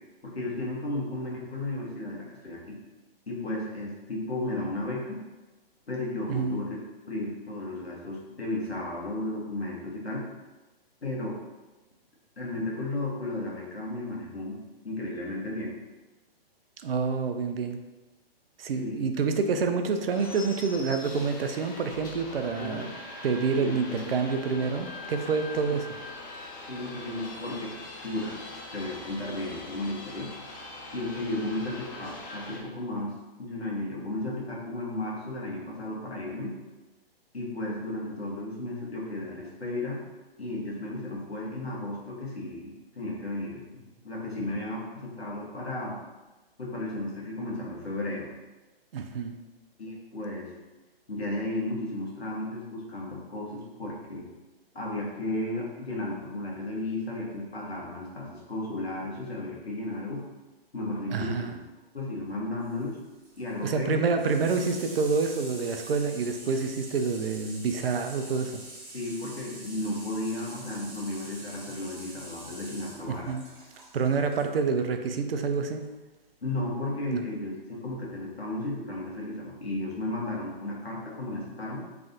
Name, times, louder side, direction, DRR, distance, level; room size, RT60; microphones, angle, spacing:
voice 1, 0.2-2.8 3.3-5.2 5.9-6.8 7.1-10.2 11.0-11.4 12.4-15.7 18.8-19.1 22.6-22.8 23.6-24.1 25.7-25.8 26.7-28.4 28.7-30.3 30.9-36.5 37.3-40.0 40.4-46.0 46.6-48.3 49.8-50.5 51.1-54.2 54.7-60.2 60.7-61.6 61.9-63.0 63.4-64.0 68.9-73.4 76.4-81.8, left 2 dB, 90° left, -4 dB, 1.3 m, -34 dB
voice 2, 6.3-6.6 16.8-17.8 18.6-22.9 23.2-26.0 48.9-49.4 61.1-61.5 63.6-68.6 73.1-73.4 73.9-75.8 77.1-77.2, right 5 dB, 70° right, 6 dB, 0.5 m, -28 dB
sound 1, 20.1-32.6, left 2 dB, 20° left, 0.4 m, -42 dB
Water tap faucet / Sink (filling or washing), 62.6-74.5 75.8-75.9, right 1 dB, 20° right, 1.0 m, -46 dB
3.2 x 2.5 x 3.9 m, 1.1 s
figure-of-eight pair, 130°, 30 cm